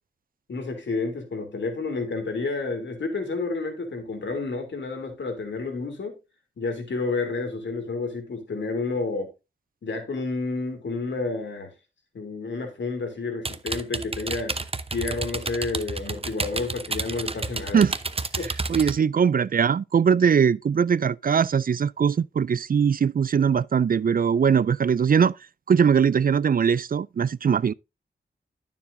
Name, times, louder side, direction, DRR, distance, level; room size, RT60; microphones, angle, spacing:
voice 1, 0.5-6.2 6.6-9.3 9.8-11.7 12.1-14.5 14.9-17.8 18.4-18.5, left 3 dB, 85° left, 3.1 m, -30 dB
sound 1, 13.4-18.9, right 3 dB, 30° right, 0.8 m, -30 dB
voice 2, 18.7-25.4 25.7-27.7, right 7 dB, 50° right, 0.4 m, -21 dB
12.0 x 7.1 x 2.6 m
wide cardioid pair, 65°, 19 cm